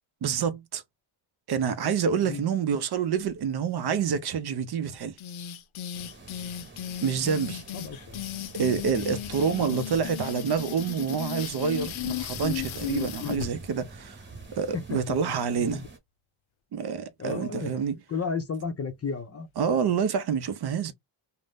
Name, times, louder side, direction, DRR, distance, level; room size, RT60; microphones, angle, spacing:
voice 1, 0.2-0.8 1.5-5.2 7.0-7.6 8.5-14.2 14.6-15.8 16.7-18.0 19.6-20.9, right 7 dB, 55° right, 0.5 m, -27 dB
sound 1, 5.2-13.5, left 12 dB, 80° left, 0.6 m, -35 dB
sound 2, 5.9-16.0, right 2 dB, 25° right, 1.0 m, -46 dB
voice 2, 7.7-8.3 9.6-10.1 13.2-13.5 14.7-15.9 17.2-17.7 18.1-19.5, left 5 dB, 30° left, 0.5 m, -34 dB
2.6 x 2.0 x 3.3 m
cardioid pair, 115°, 48 cm